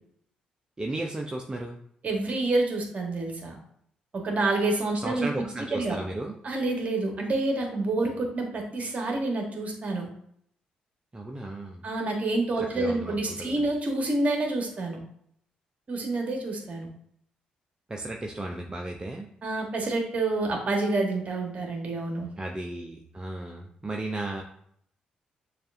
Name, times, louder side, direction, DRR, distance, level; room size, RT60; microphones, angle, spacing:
voice 1, 0.8-1.8 5.0-6.4 11.1-11.9 12.6-13.7 17.9-19.3 22.4-24.4, right 2 dB, 25° right, 1 dB, 0.5 m, -34 dB
voice 2, 2.0-3.6 4.1-5.4 5.7-6.0 6.4-10.1 11.8-15.0 15.9-16.9 19.4-22.3, right 2 dB, 45° right, 2 dB, 1.3 m, -28 dB
6.5 x 2.5 x 2.5 m, 0.68 s
hypercardioid pair, 50°, 3 cm